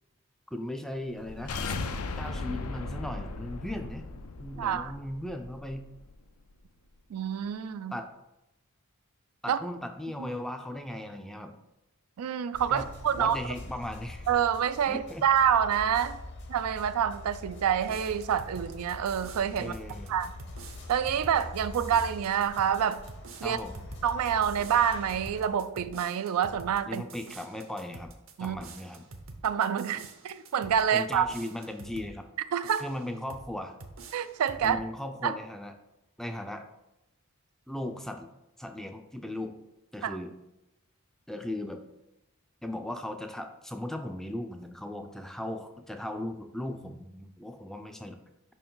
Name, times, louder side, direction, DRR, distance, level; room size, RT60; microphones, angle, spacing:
voice 1, 0.5-1.6 2.2-4.0 4.4-5.9 7.9-8.1 9.4-11.6 12.7-14.3 14.9-15.2 19.6-20.2 23.4-23.9 26.9-28.1 28.4-29.0 30.9-32.3 32.8-33.7 34.6-35.7 36.2-36.6 37.7-38.3 38.6-39.6 39.9-40.3 41.3-41.8 42.6-48.2, left 1 dB, ahead, 6 dB, 0.4 m, -37 dB
sound 1, 1.1-6.2, left 3 dB, 85° left, 0.5 m, -37 dB
voice 2, 4.6-4.9 7.1-7.9 9.5-9.6 10.2-10.3 12.2-13.4 14.3-16.2 16.5-19.7 20.1-20.3 20.9-23.0 23.4-23.6 24.0-27.0 28.4-28.6 29.4-31.3 32.5-32.9 34.1-34.8 35.2-35.3 40.0-40.2, right 8 dB, 90° right, 13 dB, 0.3 m, -27 dB
sound 2, 12.5-25.4, left 2 dB, 55° left, 0.8 m, -44 dB
sound 3, 17.9-32.2 32.6-33.5 33.8-34.8, right 3 dB, 65° right, 0.7 m, -48 dB
5.5 x 4.6 x 3.8 m, 0.90 s
head